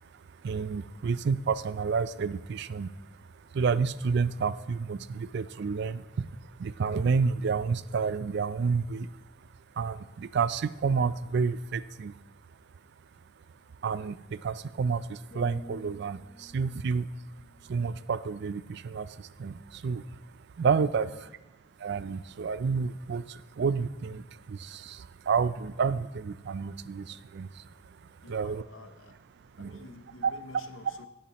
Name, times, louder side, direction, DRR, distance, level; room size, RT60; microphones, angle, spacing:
voice 1, 0.0-2.9 3.4-9.1 9.8-12.2 13.8-17.1 17.6-20.2 20.5-21.1 21.8-28.6 29.6-29.8 30.2-30.3, right 5 dB, 60° right, 15 dB, 0.4 m, -30 dB
sound 1, 15.3-19.2 19.7-20.0, equal, 45° left, 4.3 m, -52 dB
voice 2, 20.9-21.3 28.2-29.2 29.6-31.1, left 2 dB, 90° left, 9 dB, 0.9 m, -50 dB
17.5 x 7.2 x 3.0 m, 1.0 s
head